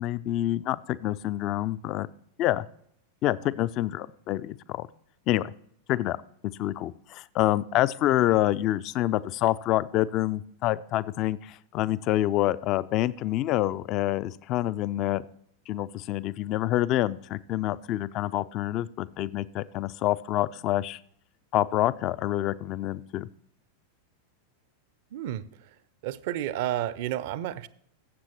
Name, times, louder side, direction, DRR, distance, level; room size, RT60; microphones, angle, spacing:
voice 1, 0.0-2.1 2.4-2.7 3.2-4.9 5.3-5.5 5.9-6.2 6.6-15.2 15.7-21.0 21.5-23.3, left 14 dB, 40° left, 0.3 m, -27 dB
voice 2, 25.1-25.4 26.0-27.7, right 12 dB, 50° right, 0.5 m, -31 dB
15.5 x 7.4 x 2.9 m
figure-of-eight pair, 90°, 0 cm